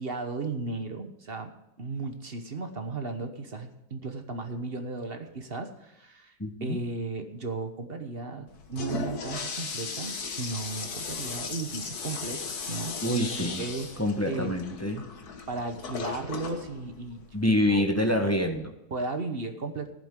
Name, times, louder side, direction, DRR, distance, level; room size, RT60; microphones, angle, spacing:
voice 1, 0.0-1.5 1.8-6.3 6.6-13.9 14.3-14.6 15.5-17.2 17.5-17.8 18.9-19.9, right 3 dB, 40° right, 6 dB, 1.2 m, -35 dB
voice 2, 6.4-6.8 13.0-13.6 14.0-15.0 17.3-18.7, left 1 dB, 10° left, 4 dB, 1.1 m, -26 dB
Toilet flush, 8.5-17.9, left 4 dB, 70° left, 1.9 m, -37 dB
15.0 x 11.0 x 3.7 m, 0.90 s
omnidirectional pair, 1.7 m